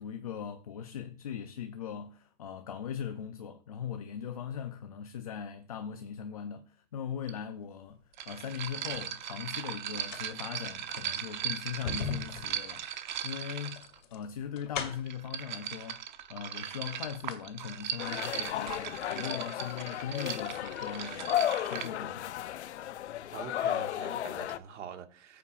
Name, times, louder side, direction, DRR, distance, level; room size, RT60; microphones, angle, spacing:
voice 1, 0.0-12.8 13.2-13.8 14.1-22.4, left 8 dB, 30° left, 0.4 m, -40 dB
sound 1, 7.3-7.4 8.1-14.0 14.9-21.9, right 10 dB, 40° right, 0.8 m, -38 dB
sound 2, 8.2-9.1 9.9-15.3 16.2-16.3 16.7-17.5 17.8-17.9, left 6 dB, 90° left, 2.5 m, -40 dB
sound 3, 18.0-24.6, left 11 dB, 65° left, 0.7 m, -34 dB
voice 2, 23.3-25.4, right 7 dB, 75° right, 1.8 m, -44 dB
14.5 x 8.3 x 2.4 m
hypercardioid pair, 175°, 37 cm